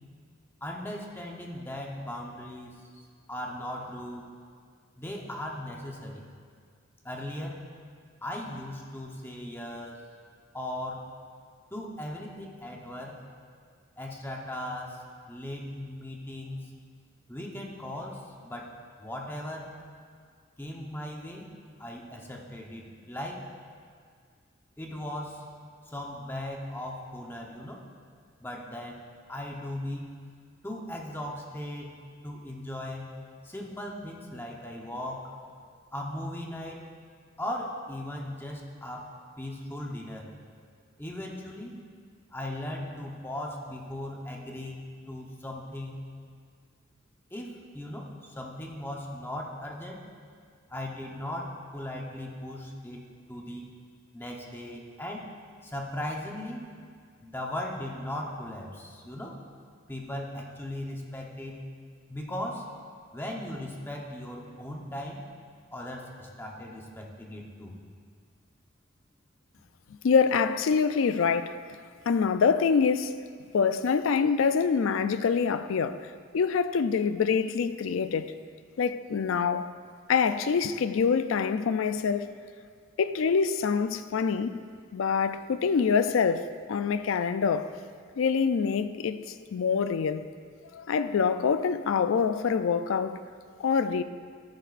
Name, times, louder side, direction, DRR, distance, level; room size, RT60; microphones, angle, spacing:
voice 1, 0.6-3.0 3.3-4.3 5.0-6.3 7.0-7.6 8.2-10.0 10.5-11.1 11.7-13.2 14.0-15.0 15.3-16.7 17.3-19.7 20.6-21.5 21.8-23.5 24.8-25.4 25.9-27.8 28.4-29.0 29.3-30.2 30.6-31.9 32.2-33.1 33.4-35.3 35.9-36.8 37.4-39.1 39.4-40.3 41.0-41.8 42.3-46.0 47.3-50.0 50.7-53.0 53.3-53.7 54.1-55.3 55.6-56.6 57.2-59.4 59.9-61.7 62.1-62.7 63.1-65.2 65.7-67.7, left 1 dB, 10° left, 0.9 m, -38 dB
voice 2, 70.0-71.6 72.1-73.2 73.5-78.3 78.8-79.7 80.1-82.3 83.0-84.6 84.9-87.7 88.2-90.3 90.7-93.2 93.6-94.0, left 6 dB, 80° left, 0.4 m, -25 dB
13.5 x 10.5 x 2.5 m
head